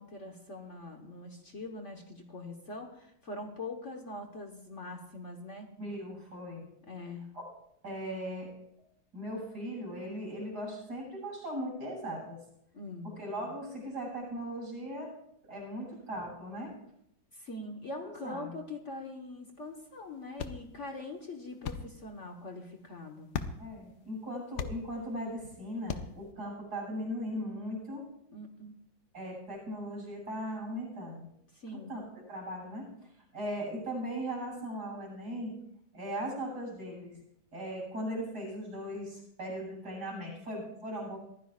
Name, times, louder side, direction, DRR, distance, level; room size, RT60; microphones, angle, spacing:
voice 1, 0.0-5.7 6.9-7.3 12.7-13.2 17.3-23.3 28.3-28.7 31.5-31.9, left 2 dB, 45° left, 2 dB, 1.6 m, -43 dB
voice 2, 5.8-6.7 7.3-7.4 7.8-8.5 9.1-12.4 13.2-15.1 15.5-16.8 18.0-18.6 23.6-28.1 29.1-31.3 31.7-32.9 33.3-35.5 35.9-37.2 37.5-41.2, equal, 60° right, -1 dB, 8.5 m, -38 dB
sound 1, 19.6-26.3, left 6 dB, 70° left, 1.4 m, -43 dB
22.5 x 15.0 x 2.5 m, 0.74 s
omnidirectional pair, 2.0 m